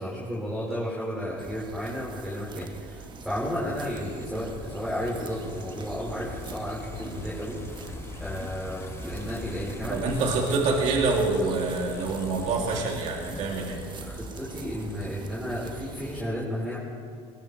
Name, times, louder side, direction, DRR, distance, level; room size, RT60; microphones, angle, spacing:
voice 1, 0.0-7.6 8.2-10.2 14.0-16.8, equal, ahead, -7 dB, 4.9 m, -33 dB
sound 1, 1.4-16.2, right 5 dB, 35° right, 1.2 m, -43 dB
sound 2, 2.6-15.3, left 4 dB, 20° left, 0.9 m, -42 dB
voice 2, 9.9-13.8, right 3 dB, 60° right, -1 dB, 3.0 m, -26 dB
21.0 x 20.0 x 3.4 m, 2.5 s
supercardioid pair, 105°, 14 cm